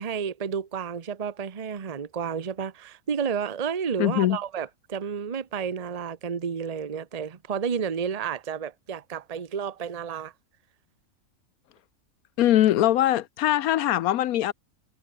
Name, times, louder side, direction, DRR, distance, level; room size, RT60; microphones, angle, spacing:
voice 1, 0.0-10.3, right 7 dB, 30° right, 0.9 m, -31 dB
voice 2, 4.0-4.4 12.4-14.5, left 13 dB, 80° left, 1.1 m, -22 dB
omnidirectional pair, 1.5 m